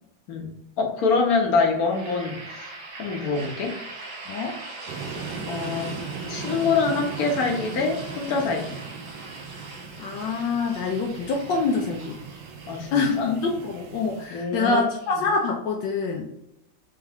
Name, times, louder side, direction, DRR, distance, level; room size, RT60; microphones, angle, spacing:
voice 1, 0.8-2.7 3.0-3.7 5.0-5.2 5.5-6.0 6.3-8.8 12.7-13.4 14.3-15.2, left 4 dB, 55° left, 1 dB, 1.3 m, -25 dB
sound 1, 1.7-15.5, right 2 dB, 50° right, 1.4 m, -41 dB
voice 2, 4.3-4.6 10.0-12.2 12.9-16.3, left 4 dB, 75° left, 1 dB, 1.3 m, -25 dB
sound 2, 4.9-14.3, right 4 dB, 75° right, 1.2 m, -38 dB
3.6 x 3.3 x 3.4 m, 0.80 s
omnidirectional pair, 2.1 m